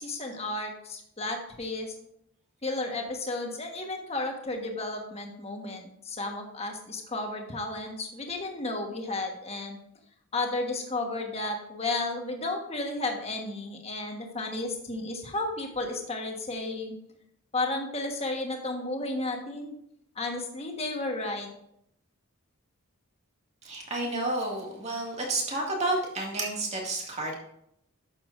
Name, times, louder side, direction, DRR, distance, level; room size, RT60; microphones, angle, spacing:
voice 1, 0.0-1.9 2.6-9.8 10.3-16.9 17.5-19.7 20.1-21.5, left 2 dB, 30° left, 2 dB, 1.4 m, -33 dB
voice 2, 23.6-27.3, right 2 dB, 30° right, -1 dB, 2.1 m, -30 dB
11.5 x 7.3 x 2.6 m, 0.74 s
head